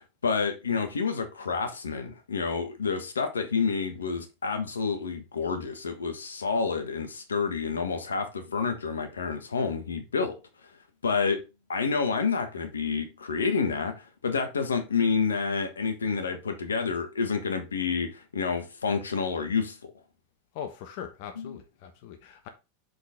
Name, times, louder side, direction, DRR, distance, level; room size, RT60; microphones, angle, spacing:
voice 1, 0.0-10.4 11.0-11.4 11.7-19.8 21.4-21.6, left 5 dB, 85° left, 1.3 m, -29 dB
voice 2, 20.5-22.5, left 9 dB, 60° left, 1.1 m, -40 dB
6.0 x 5.4 x 3.7 m
hypercardioid pair, 90°, 0 cm